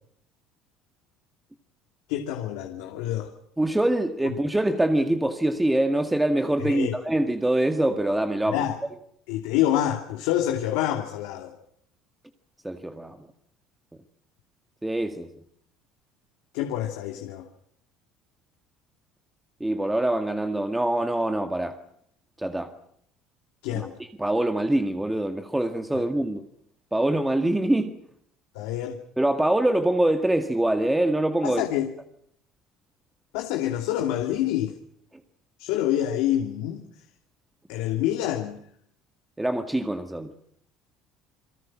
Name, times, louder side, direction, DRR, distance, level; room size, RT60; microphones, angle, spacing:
voice 1, 2.1-3.3 6.6-6.9 8.5-8.8 9.3-11.5 16.5-17.5 23.6-23.9 28.5-29.0 31.4-31.9 33.3-34.7 35.6-36.8 37.7-38.6, left 12 dB, 85° left, 3 dB, 2.9 m, -27 dB
voice 2, 3.6-8.7 12.6-13.2 14.8-15.3 19.6-21.8 22.4-22.7 23.7-26.5 26.9-28.0 29.2-31.6 39.4-40.3, right 1 dB, 5° right, 6 dB, 1.9 m, -24 dB
29.5 x 23.0 x 6.2 m, 0.71 s
cardioid pair, 120°, 0 cm